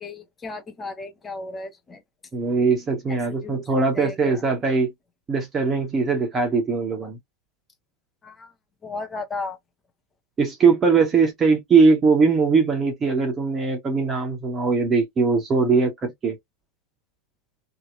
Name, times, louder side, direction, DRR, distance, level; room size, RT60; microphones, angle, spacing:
voice 1, 0.0-2.0 3.1-3.6 3.9-4.4 8.2-8.5 8.8-9.6, left 3 dB, 15° left, 0.7 m, -35 dB
voice 2, 2.3-4.9 5.3-7.2 10.4-16.4, right 4 dB, 20° right, 0.9 m, -20 dB
2.8 x 2.7 x 2.4 m
figure-of-eight pair, 90°, 0 cm